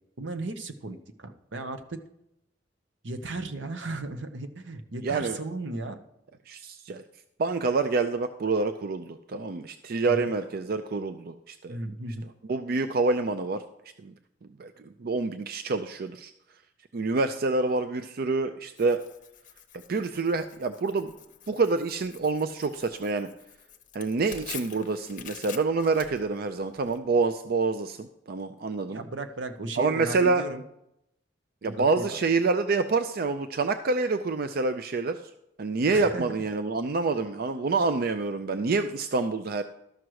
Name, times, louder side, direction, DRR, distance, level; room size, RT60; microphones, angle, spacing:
voice 1, 0.2-2.0 3.0-6.0 10.1-10.3 11.7-12.3 28.9-30.6 31.6-32.1 35.9-36.4, right 2 dB, 80° right, 8 dB, 0.9 m, -36 dB
voice 2, 5.0-5.4 6.5-7.0 7.4-11.8 12.5-13.6 14.0-14.1 14.6-16.3 16.9-19.0 19.7-21.1 21.5-23.3 23.9-29.0 29.8-30.4 31.6-35.2 35.6-39.6, right 3 dB, 55° right, 10 dB, 0.4 m, -27 dB
Tearing, 18.8-27.0, left 9 dB, 45° left, 0.8 m, -47 dB
12.5 x 6.2 x 4.7 m, 0.81 s
head